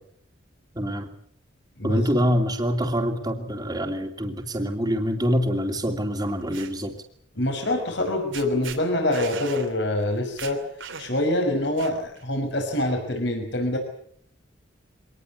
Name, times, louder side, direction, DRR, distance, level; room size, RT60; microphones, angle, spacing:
voice 1, 0.7-1.1 1.8-7.0, equal, 20° right, 3 dB, 2.7 m, -25 dB
sound 1, 6.2-6.7 7.9-8.1 8.3-8.8 9.1-9.7 10.0-10.1 10.4-11.3 11.8-12.2, right 6 dB, 75° right, 3.0 m, -37 dB
voice 2, 7.4-10.6 11.0-13.8, left 1 dB, 60° left, 4 dB, 5.6 m, -25 dB
24.0 x 19.0 x 8.5 m, 0.64 s
head